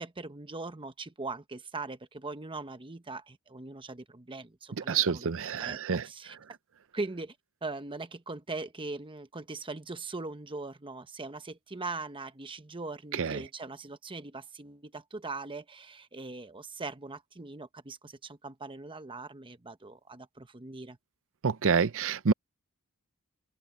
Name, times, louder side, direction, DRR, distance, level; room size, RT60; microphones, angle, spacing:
voice 1, 0.0-6.4 6.9-7.4 7.6-21.0, right 3 dB, 25° right, 1.0 m, -40 dB
voice 2, 4.9-6.0 13.2-13.4 21.4-22.3, right 6 dB, 60° right, 0.6 m, -27 dB
open air
head